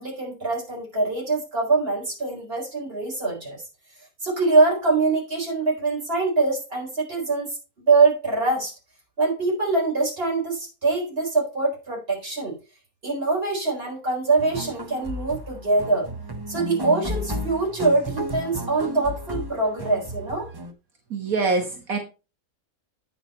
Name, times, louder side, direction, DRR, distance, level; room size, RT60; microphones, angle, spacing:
voice 1, 0.0-3.6 4.2-8.7 9.2-12.6 13.0-16.1 16.5-20.5, right 3 dB, 40° right, -1 dB, 4.5 m, -23 dB
sound 1, 14.4-20.7, equal, 20° right, 0.8 m, -33 dB
voice 2, 21.1-22.0, right 3 dB, 65° right, 3 dB, 1.8 m, -24 dB
9.2 x 6.9 x 4.3 m, 0.30 s
omnidirectional pair, 1.6 m